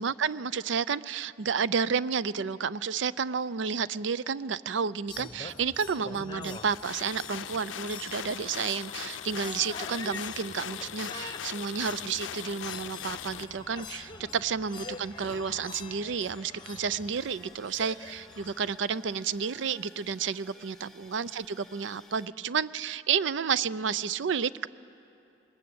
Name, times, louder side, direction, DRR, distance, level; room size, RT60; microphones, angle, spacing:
voice 1, 0.0-24.7, right 6 dB, 70° right, 17 dB, 0.5 m, -31 dB
sound 1, 5.1-18.7, left 4 dB, 25° left, 0.9 m, -45 dB
sound 2, 6.5-13.4, left 10 dB, 80° left, 0.5 m, -40 dB
sound 3, 13.0-22.3, left 2 dB, ahead, 1.1 m, -56 dB
21.5 x 20.0 x 8.7 m, 2.8 s
head